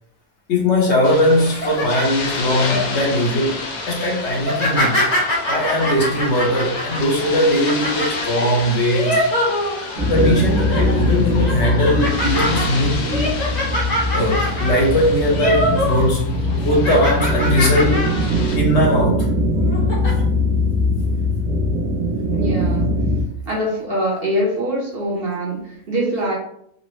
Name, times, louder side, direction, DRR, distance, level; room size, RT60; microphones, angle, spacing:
voice 1, 0.5-5.0 5.5-9.2 10.0-13.3 14.1-18.0 18.5-19.3, left 1 dB, 60° left, -2 dB, 1.0 m, -19 dB
sound 1, 1.0-18.6, left 3 dB, 85° left, 0.4 m, -31 dB
sound 2, 1.4-2.8 3.3-3.6 4.4-10.1 10.5-10.9 11.4-16.1 16.4-18.3 18.7-18.9 19.6-20.1, equal, 35° left, 0.9 m, -24 dB
sound 3, 10.0-23.2, left 1 dB, 90° right, 1.2 m, -21 dB
voice 2, 22.3-22.9 23.5-26.3, right 1 dB, 50° right, -4 dB, 0.9 m, -23 dB
3.9 x 2.0 x 3.0 m, 0.71 s
omnidirectional pair, 1.5 m